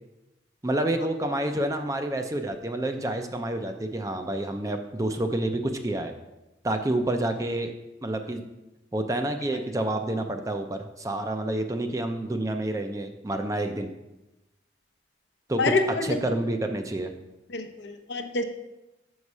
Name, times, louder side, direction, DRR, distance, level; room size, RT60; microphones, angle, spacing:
voice 1, 0.6-6.1 6.6-7.7 8.0-8.4 8.9-13.9 15.5-15.7 16.0-17.1, right 1 dB, 15° right, 6 dB, 0.4 m, -28 dB
voice 2, 17.5-18.4, left 3 dB, 75° left, 6 dB, 0.7 m, -26 dB
7.0 x 4.8 x 5.4 m, 0.99 s
head